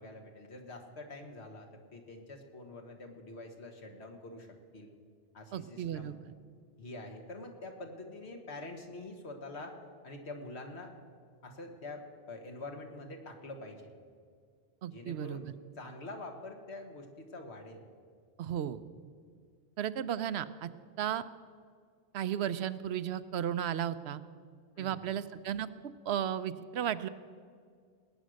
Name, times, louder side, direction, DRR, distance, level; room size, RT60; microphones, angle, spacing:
voice 1, 0.0-4.9 5.3-6.2 6.8-9.8 10.0-10.9 11.4-13.9 14.9-17.8 24.8-25.1, left 2 dB, 85° left, 4 dB, 1.9 m, -46 dB
voice 2, 5.5-6.2 14.8-15.5 18.4-18.8 19.8-20.7 21.0-21.2 22.1-24.2 24.8-25.7 26.1-27.1, right 10 dB, 80° right, 13 dB, 0.9 m, -34 dB
19.0 x 9.2 x 6.4 m, 2.1 s
omnidirectional pair, 1.1 m